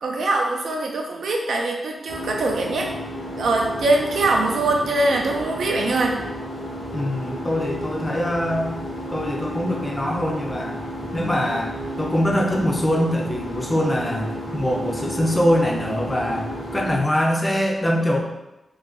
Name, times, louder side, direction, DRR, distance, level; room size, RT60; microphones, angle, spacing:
voice 1, 0.0-2.9 3.4-6.2, right 2 dB, 75° right, 1 dB, 0.5 m, -22 dB
sound 1, 2.1-17.0, equal, 75° left, 0.9 m, -32 dB
voice 2, 6.9-8.8 9.1-10.8 11.1-18.2, equal, 15° left, -1 dB, 0.4 m, -23 dB
2.7 x 2.4 x 3.7 m, 0.97 s
wide cardioid pair, 175°, 0 cm